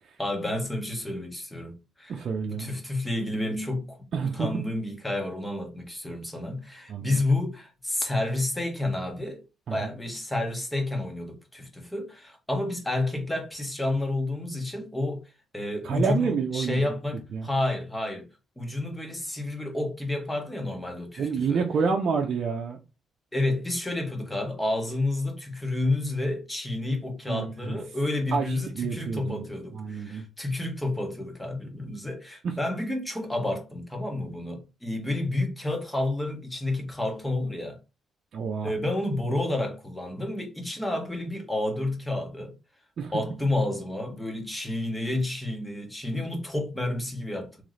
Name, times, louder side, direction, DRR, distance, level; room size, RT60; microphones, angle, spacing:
voice 1, 0.2-4.0 4.2-9.4 9.7-15.2 15.5-18.2 18.6-21.6 23.3-37.8 38.6-42.5 43.1-47.6, left 2 dB, 10° left, 1.5 m, -30 dB
voice 2, 2.1-2.7 4.1-4.6 6.9-7.2 9.7-9.9 15.8-16.8 17.3-17.5 21.2-22.8 27.3-27.8 28.3-29.4 29.7-30.2 32.4-32.5 38.3-38.7 43.0-43.1, right 5 dB, 60° right, 0.7 m, -28 dB
3.2 x 3.2 x 3.9 m
cardioid pair, 90°, 0 cm